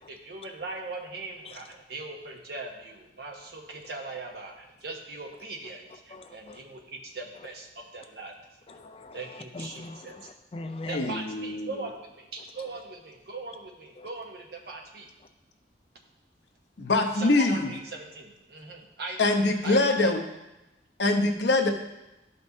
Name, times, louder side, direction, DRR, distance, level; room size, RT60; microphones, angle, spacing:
voice 1, 0.1-8.3 9.1-10.2 10.9-15.1 17.2-19.2 19.6-20.1, right 3 dB, 60° right, 1 dB, 1.2 m, -40 dB
voice 2, 6.1-6.6 7.3-7.5 8.7-11.2 12.6-12.7 14.0-14.1, left 2 dB, 30° left, 6 dB, 0.4 m, -41 dB
voice 3, 10.9-11.7 16.8-17.7 19.2-20.2 21.0-21.7, left 2 dB, 70° left, 4 dB, 0.8 m, -24 dB
12.0 x 5.4 x 2.7 m, 0.97 s
head